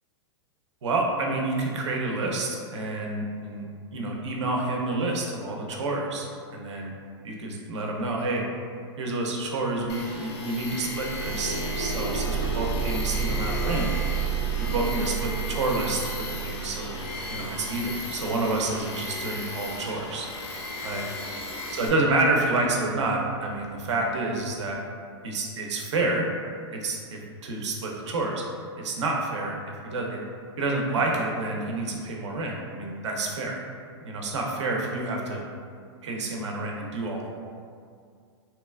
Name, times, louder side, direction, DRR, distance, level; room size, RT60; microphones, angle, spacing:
voice 1, 0.8-6.9 7.2-8.4 9.0-13.9 14.6-16.9 17.3-20.3 20.8-21.0 21.8-24.8 25.2-26.3 26.7-28.4 28.8-29.6 29.8-30.2 30.6-33.6 34.0-35.4 36.0-37.3, right 2 dB, 85° right, 0 dB, 0.5 m, -29 dB
Tools, 9.9-21.9, left 3 dB, 65° left, 0.5 m, -36 dB
sound 1, 10.7-21.3 22.1-22.2 22.7-22.8, right 6 dB, 90° left, 1.5 m, -32 dB
2.9 x 2.3 x 2.2 m, 2.2 s
hypercardioid pair, 125°, 15 cm